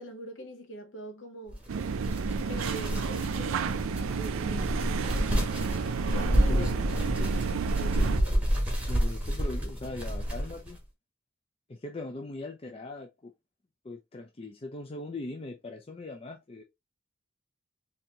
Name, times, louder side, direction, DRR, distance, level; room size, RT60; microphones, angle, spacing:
voice 1, 0.0-1.6 2.4-3.7 4.1-5.4 6.1-6.7 7.0-8.7, right 1 dB, 60° left, 1.1 m, -43 dB
sound 1, 1.5-10.8, equal, 5° right, 1.0 m, -29 dB
sound 2, 1.7-8.2, right 6 dB, 75° right, 0.4 m, -31 dB
voice 2, 6.5-7.0 8.9-10.8 11.7-13.3 13.8-16.6, left 2 dB, 30° left, 0.5 m, -40 dB
4.0 x 2.7 x 2.9 m
head